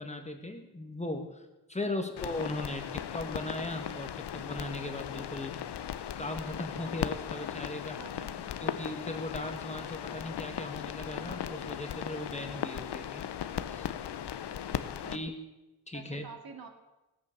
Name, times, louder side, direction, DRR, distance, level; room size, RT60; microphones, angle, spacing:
voice 1, 0.0-5.5 6.2-8.0 8.6-13.2 13.7-13.9 15.1-15.3 15.9-16.3, left 1 dB, 15° left, 5 dB, 1.6 m, -38 dB
sound 1, 2.2-15.2, left 9 dB, 85° left, 0.8 m, -37 dB
voice 2, 8.0-8.5 14.6-15.3 15.9-16.7, right 5 dB, 60° right, 4 dB, 2.3 m, -49 dB
16.5 x 8.6 x 7.1 m, 1.0 s
wide cardioid pair, 100°, 40 cm